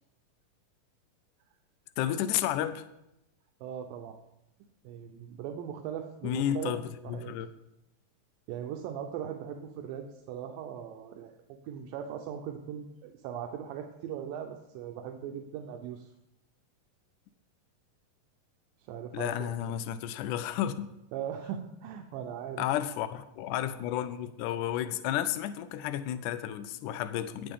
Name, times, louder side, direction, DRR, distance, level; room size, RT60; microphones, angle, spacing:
voice 1, 2.0-2.9 6.2-7.5 19.1-20.9 22.6-27.5, left 11 dB, 80° left, 1.9 m, -32 dB
voice 2, 3.6-4.2 4.8-6.8 7.0-7.3 8.5-11.3 11.6-16.1 18.9-19.7 21.1-22.7, right 9 dB, 85° right, 2.5 m, -39 dB
18.5 x 6.9 x 3.7 m
omnidirectional pair, 4.0 m